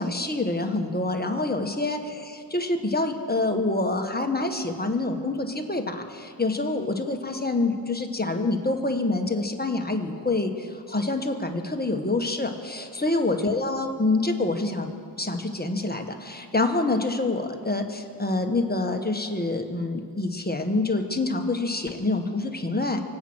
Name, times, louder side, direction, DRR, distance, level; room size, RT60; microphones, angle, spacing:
voice 1, 0.0-23.0, left 2 dB, 20° left, 4 dB, 1.5 m, -26 dB
24.5 x 8.8 x 6.2 m, 2.4 s
wide cardioid pair, 60°, 44 cm